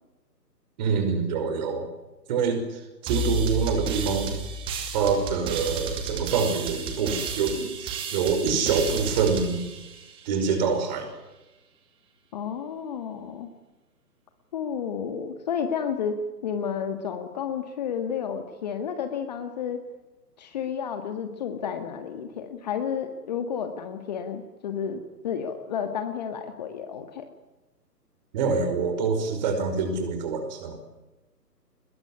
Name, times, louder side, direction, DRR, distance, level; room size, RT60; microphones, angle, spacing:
voice 1, 0.8-1.9 2.3-4.4 4.9-9.6 10.3-11.1 28.3-30.8, right 5 dB, 25° right, 7 dB, 5.5 m, -26 dB
sound 1, 3.1-10.6, right 4 dB, 10° right, 2.4 m, -32 dB
voice 2, 12.3-13.5 14.5-16.2 16.4-19.8 20.4-27.3, left 7 dB, 25° left, 7 dB, 1.8 m, -31 dB
23.0 x 21.5 x 9.9 m, 1.1 s
figure-of-eight pair, 145°, 49 cm